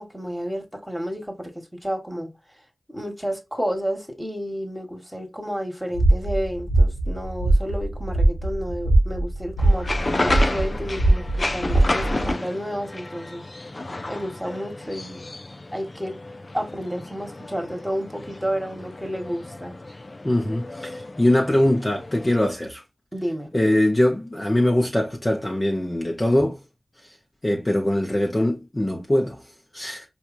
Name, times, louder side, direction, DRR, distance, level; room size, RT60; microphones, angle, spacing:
voice 1, 0.0-2.4 2.9-11.3 11.5-13.4 14.1-15.2 15.7-16.1 16.5-19.8 23.1-23.5, equal, 5° right, 1.6 m, -31 dB
sound 1, 5.9-12.3, right 1 dB, 70° left, 1.2 m, -21 dB
sound 2, 9.6-22.4, left 2 dB, 50° left, 0.5 m, -32 dB
voice 2, 20.2-22.8 23.5-26.6 27.4-29.4 29.7-30.0, left 1 dB, 30° left, 1.0 m, -22 dB
4.6 x 2.7 x 2.6 m
cardioid pair, 45°, 0 cm